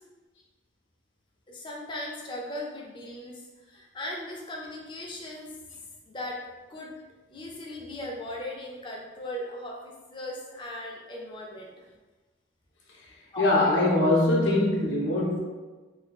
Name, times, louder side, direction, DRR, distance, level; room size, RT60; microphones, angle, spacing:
voice 1, 1.5-5.5 6.0-6.4 6.7-6.9 7.3-11.8 13.3-14.0, left 1 dB, 25° left, -1 dB, 0.4 m, -38 dB
voice 2, 13.4-15.4, left 2 dB, 65° left, -3 dB, 0.7 m, -22 dB
2.7 x 2.3 x 3.4 m, 1.3 s
head